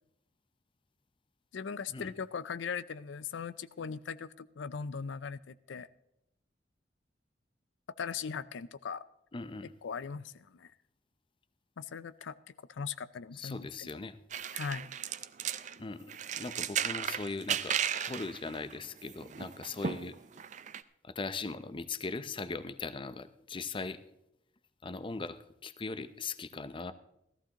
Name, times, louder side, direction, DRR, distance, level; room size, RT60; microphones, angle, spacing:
voice 1, 1.5-5.9 8.0-9.0 9.8-10.7 11.8-12.3 12.7-13.9 14.5-14.9, left 6 dB, 85° left, 15 dB, 0.5 m, -39 dB
voice 2, 9.3-9.7 13.3-14.2 15.8-20.2 21.0-24.0 24.8-26.9, left 3 dB, 30° left, 12 dB, 0.6 m, -39 dB
sound 1, 14.3-15.8 16.1-20.8, right 8 dB, 40° right, 0.4 m, -35 dB
15.5 x 14.0 x 2.9 m, 0.82 s
head